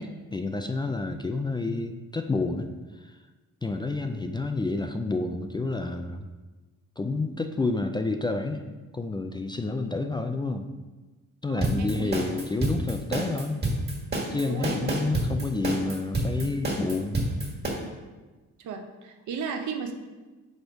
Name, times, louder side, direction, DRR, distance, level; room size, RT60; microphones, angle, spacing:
voice 1, 0.0-2.7 2.9-3.2 3.6-6.3 7.0-10.7 11.4-13.6 14.3-17.2, left 3 dB, 15° left, 6 dB, 0.3 m, -29 dB
voice 2, 11.5-12.2 14.4-15.1 18.6-19.9, right 5 dB, 70° right, 5 dB, 0.8 m, -35 dB
sound 1, 11.6-17.7, right 1 dB, 35° right, 1.7 m, -28 dB
5.1 x 4.3 x 4.6 m, 1.2 s
cardioid pair, 90°, 30 cm